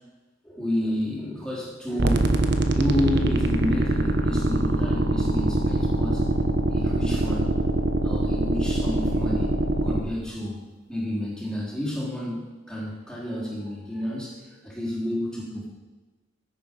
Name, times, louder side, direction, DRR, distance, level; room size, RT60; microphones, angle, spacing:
voice 1, 0.4-6.2 6.7-7.5 8.0-9.5 9.8-10.6 10.9-15.7, left 1 dB, 5° left, -5 dB, 4.0 m, -30 dB
sound 1, 2.0-10.0, right 2 dB, 60° right, 1.0 m, -23 dB
16.0 x 9.0 x 5.4 m, 1.2 s
head